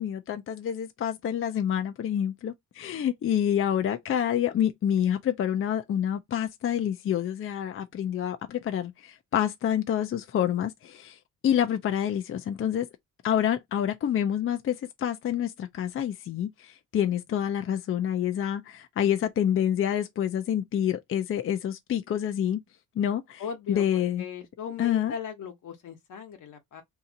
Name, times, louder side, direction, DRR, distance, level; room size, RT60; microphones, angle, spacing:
voice 1, 0.0-11.2 11.4-12.9 13.2-22.6 23.0-23.4 23.7-24.2 24.8-25.1, left 10 dB, 45° left, 0.4 m, -27 dB
voice 2, 23.4-26.8, left 7 dB, 75° left, 1.0 m, -38 dB
2.8 x 2.4 x 3.8 m
cardioid pair, 125°, 31 cm